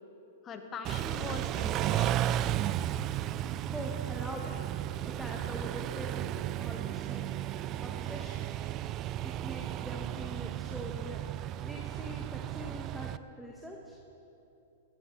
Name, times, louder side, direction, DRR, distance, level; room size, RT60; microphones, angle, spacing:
voice 1, 0.4-2.5, left 5 dB, 25° left, 6 dB, 1.5 m, -42 dB
Car / Idling / Accelerating revving vroom, 0.8-13.2, right 12 dB, 35° right, 0.4 m, -34 dB
voice 2, 3.6-4.6 5.0-7.3 7.8-8.5 9.2-11.2 11.6-14.0, equal, ahead, -1 dB, 1.4 m, -43 dB
18.0 x 12.0 x 4.7 m, 2.9 s
hypercardioid pair, 115°, 0 cm